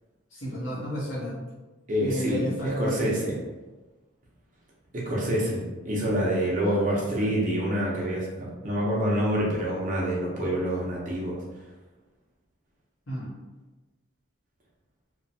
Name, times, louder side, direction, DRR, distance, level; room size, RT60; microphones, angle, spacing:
voice 1, 0.3-1.4 2.0-3.2 6.6-7.3 13.1-13.3, equal, 80° left, -7 dB, 1.1 m, -32 dB
voice 2, 1.9-3.3 4.9-11.4, equal, 40° right, -4 dB, 0.6 m, -27 dB
2.7 x 2.3 x 2.7 m, 1.2 s
head